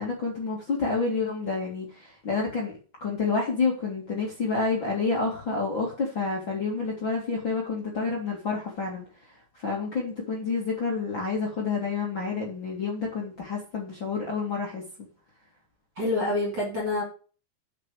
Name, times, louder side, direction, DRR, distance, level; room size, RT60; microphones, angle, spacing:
voice 1, 0.0-2.7 3.0-9.0 9.6-15.1, left 4 dB, 35° left, -3 dB, 2.6 m, -29 dB
voice 2, 16.0-17.0, left 2 dB, 30° right, -2 dB, 3.3 m, -27 dB
8.4 x 6.0 x 7.0 m, 0.37 s
omnidirectional pair, 4.8 m